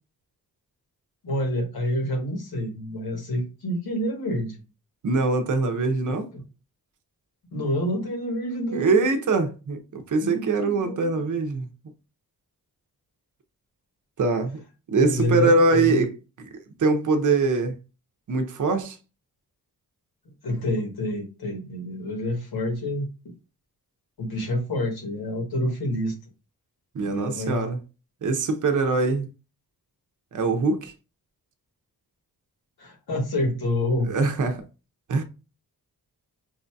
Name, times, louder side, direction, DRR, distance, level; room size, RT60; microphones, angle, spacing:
voice 1, 1.2-4.6 6.1-6.4 7.5-9.0 10.2-11.1 14.9-16.0 20.4-23.1 24.2-26.2 27.0-27.7 32.8-34.1, left 1 dB, 75° left, 1.3 m, -28 dB
voice 2, 5.0-6.3 8.7-11.7 14.2-14.6 14.9-16.1 16.8-17.8 18.3-19.0 26.9-27.8 28.2-29.3 30.3-30.9 34.1-34.6 35.1-35.2, right 3 dB, 55° right, 0.7 m, -23 dB
4.8 x 2.6 x 2.3 m
cardioid pair, 70°, 38 cm